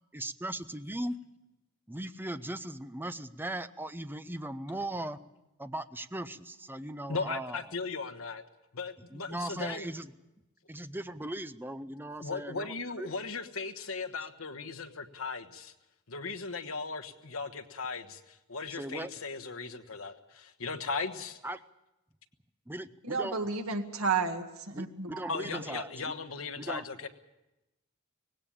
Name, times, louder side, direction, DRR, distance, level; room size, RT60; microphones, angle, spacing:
voice 1, 0.1-1.1 1.9-5.2 5.6-7.6 9.1-10.1 10.7-13.2 18.7-19.1 21.4-21.6 22.7-23.4 24.7-26.1 26.6-26.8, right 1 dB, 10° right, 0.6 m, -38 dB
voice 2, 7.1-8.4 8.7-9.9 12.2-15.7 16.1-21.4 25.3-27.1, left 4 dB, 75° left, 1.3 m, -37 dB
voice 3, 23.0-25.1, right 5 dB, 85° right, 1.9 m, -31 dB
19.0 x 17.0 x 8.6 m
head